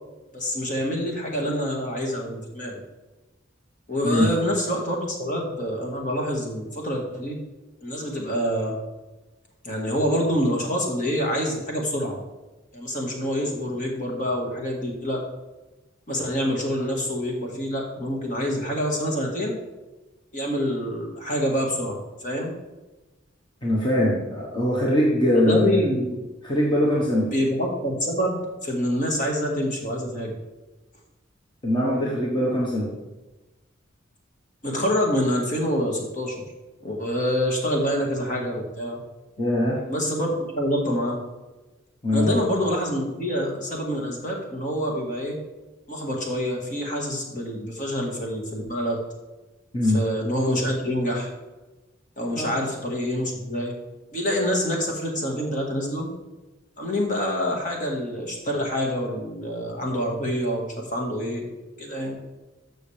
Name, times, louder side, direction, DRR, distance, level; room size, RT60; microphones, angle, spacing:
voice 1, 0.3-2.8 3.9-7.4 7.8-8.8 9.6-12.2 12.7-15.2 16.1-19.6 20.3-22.5 25.3-26.2 27.3-30.4 34.6-36.5 36.8-39.0 39.9-41.2 42.1-45.4 45.9-49.0 49.9-51.3 52.2-53.7 54.1-56.1 56.8-61.5 61.8-62.1, equal, 40° left, 0 dB, 1.8 m, -26 dB
voice 2, 23.6-25.9 26.4-27.3 31.6-32.9 39.4-39.8 42.0-42.4 49.7-50.0 52.4-52.5, left 1 dB, 25° left, -4 dB, 1.3 m, -22 dB
12.5 x 6.4 x 3.4 m, 1.1 s
head